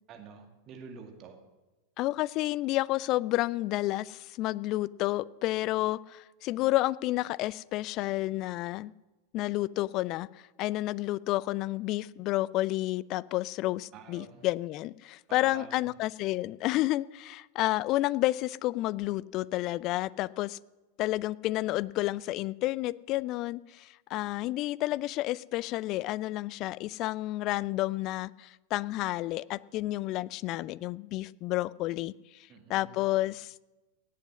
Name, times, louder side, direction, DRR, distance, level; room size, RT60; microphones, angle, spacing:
voice 1, 0.1-1.4 13.9-14.5 15.3-15.8 32.5-33.1, right 6 dB, 35° right, 5 dB, 1.9 m, -48 dB
voice 2, 2.0-8.9 9.3-20.6 21.0-33.6, left 17 dB, 40° left, 22 dB, 0.3 m, -30 dB
17.5 x 8.4 x 6.2 m, 1.1 s
figure-of-eight pair, 90°, 0 cm